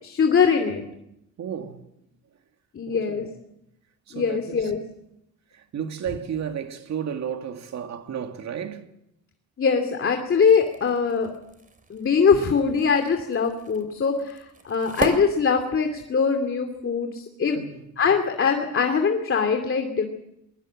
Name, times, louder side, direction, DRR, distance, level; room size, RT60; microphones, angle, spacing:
voice 1, 0.0-0.9 2.7-3.3 4.1-4.8 9.6-11.3 11.9-17.6 18.0-20.1, left 5 dB, 45° left, 2.7 m, -22 dB
voice 2, 1.4-1.8 2.9-3.3 4.1-4.7 5.5-8.9 17.6-17.8, right 8 dB, 60° right, 2.2 m, -33 dB
sound 1, 10.2-16.2, right 3 dB, 25° right, 3.3 m, -37 dB
22.0 x 20.5 x 7.7 m
cardioid pair, 90°, 30 cm